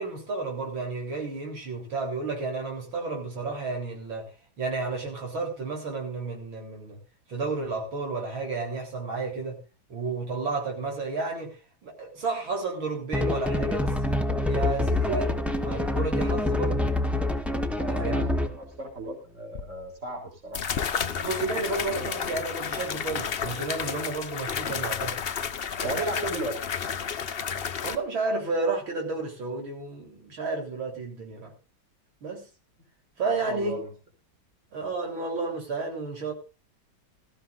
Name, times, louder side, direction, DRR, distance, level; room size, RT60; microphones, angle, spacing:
voice 1, 0.0-4.3 4.6-7.0 7.3-9.6 9.9-11.6 11.8-16.8 17.8-18.2 21.2-25.1 25.8-26.3 27.8-31.5 32.2-32.4 33.2-33.8 34.7-36.3, right 3 dB, 85° right, 1 dB, 4.5 m, -32 dB
sound 1, 13.1-18.6, left 2 dB, ahead, 0.4 m, -26 dB
voice 2, 17.6-20.9 21.2-21.6 21.9-22.1 25.8-26.6 33.5-33.9, right 2 dB, 40° right, 2 dB, 3.8 m, -36 dB
sound 2, 19.5-19.6 20.5-28.0, left 7 dB, 85° left, 0.5 m, -31 dB
20.0 x 14.0 x 2.5 m, 0.30 s
omnidirectional pair, 2.1 m